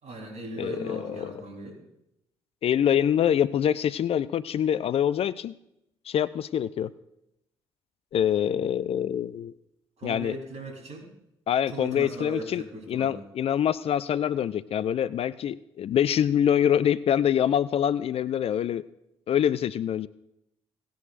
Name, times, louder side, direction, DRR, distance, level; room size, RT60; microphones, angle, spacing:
voice 1, 0.0-1.8 10.0-11.1 11.7-13.2, right 1 dB, 55° right, 1 dB, 4.0 m, -38 dB
voice 2, 0.6-1.3 2.6-5.5 6.1-6.9 8.1-9.5 10.0-10.4 11.5-12.6 12.9-18.8 19.3-20.1, left 9 dB, 45° left, 17 dB, 0.4 m, -25 dB
18.0 x 10.0 x 2.6 m, 0.83 s
figure-of-eight pair, 45°, 14 cm